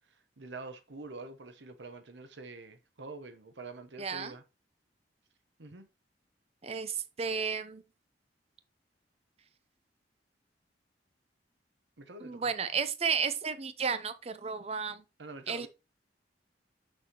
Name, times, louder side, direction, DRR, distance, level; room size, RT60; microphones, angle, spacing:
voice 1, 0.4-4.4 5.6-5.9 12.0-12.5 15.2-15.7, right 3 dB, 85° right, 0.9 m, -46 dB
voice 2, 4.0-4.3 6.6-7.8 12.2-15.0 15.5-15.7, right 6 dB, 35° right, 0.6 m, -33 dB
6.3 x 6.2 x 2.9 m
head